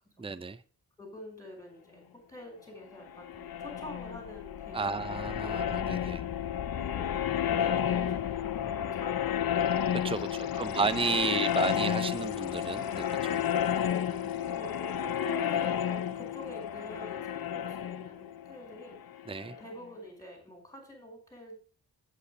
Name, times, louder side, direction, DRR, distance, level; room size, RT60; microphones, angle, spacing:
voice 1, 0.2-0.6 4.7-6.2 9.9-10.3 10.6-13.4 19.3-19.5, right 4 dB, 15° right, 0.6 m, -32 dB
voice 2, 1.0-5.6 6.7-9.5 10.1-10.9 13.8-19.0 19.5-21.6, left 1 dB, 10° left, 5.3 m, -46 dB
sound 1, 3.0-19.7, left 9 dB, 60° left, 0.6 m, -31 dB
8.3 x 8.2 x 5.1 m
cardioid pair, 65°, 40 cm